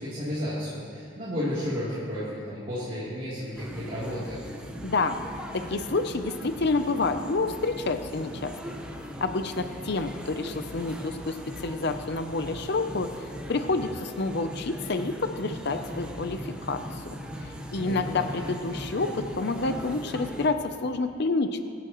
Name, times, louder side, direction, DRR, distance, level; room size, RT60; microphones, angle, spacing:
voice 1, 0.0-4.4 17.9-18.5, equal, 40° right, -11 dB, 3.3 m, -32 dB
sound 1, 3.6-20.5, equal, 5° right, 1.0 m, -39 dB
voice 2, 4.8-5.2 5.5-8.8 9.2-16.8 17.1-21.6, left 3 dB, 55° left, 8 dB, 0.6 m, -29 dB
24.5 x 11.5 x 3.1 m, 2.5 s
head